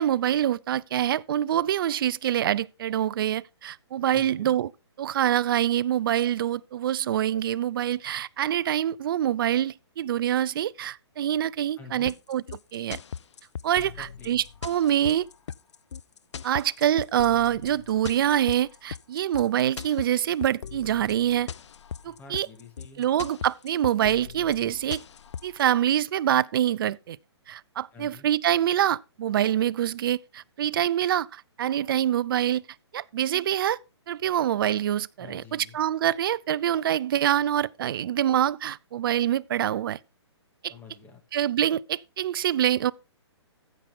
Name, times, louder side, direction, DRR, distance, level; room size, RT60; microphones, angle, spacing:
voice 1, 0.0-4.7 5.0-12.4 12.7-13.0 13.6-15.3 16.4-21.5 22.0-22.5 23.0-25.0 25.4-27.2 27.5-32.6 32.9-33.8 34.1-40.0 40.6-40.7 41.3-42.9, right 11 dB, 50° right, 0.4 m, -25 dB
voice 2, 4.1-4.6 11.8-12.1 13.7-14.4 22.0-23.1 27.9-28.3 35.2-35.8 40.7-41.2, left 5 dB, 10° left, 2.4 m, -48 dB
sound 1, 12.1-25.6, left 7 dB, 85° left, 0.4 m, -39 dB
15.0 x 5.9 x 3.6 m
hypercardioid pair, 150°, 15 cm